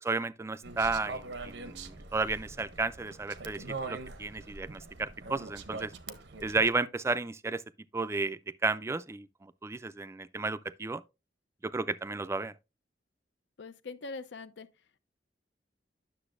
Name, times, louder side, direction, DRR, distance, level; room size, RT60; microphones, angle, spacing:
voice 1, 0.1-5.9 6.4-7.6 7.9-11.0 11.6-12.5, right 3 dB, 15° right, 0.3 m, -33 dB
sound 1, 0.6-6.7, right 3 dB, 80° right, 0.8 m, -43 dB
voice 2, 13.6-14.7, left 3 dB, 85° left, 0.6 m, -42 dB
9.8 x 6.7 x 2.4 m
head